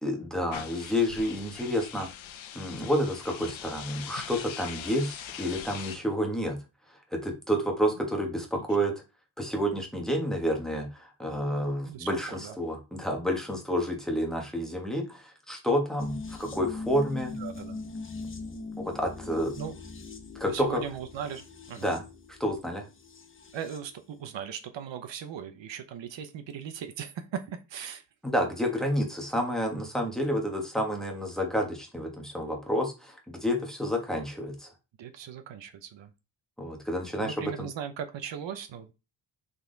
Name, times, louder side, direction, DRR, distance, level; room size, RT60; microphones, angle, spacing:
voice 1, 0.0-2.1 2.5-6.6 6.9-8.9 9.4-17.3 18.8-19.6 20.3-20.8 21.8-22.0 22.4-22.8 28.2-34.7 36.6-37.7, equal, ahead, 1 dB, 1.4 m, -29 dB
sound 1, 0.5-6.0, left 9 dB, 80° left, 0.9 m, -42 dB
voice 2, 11.8-12.6 17.4-17.8 19.6-19.7 20.4-21.9 23.5-28.0 35.0-36.1 37.2-38.9, right 8 dB, 70° right, 9 dB, 0.9 m, -38 dB
sound 2, 16.0-23.9 24.2-24.3, left 3 dB, 25° left, 0.9 m, -41 dB
5.8 x 4.2 x 3.9 m, 0.28 s
wide cardioid pair, 175°, 46 cm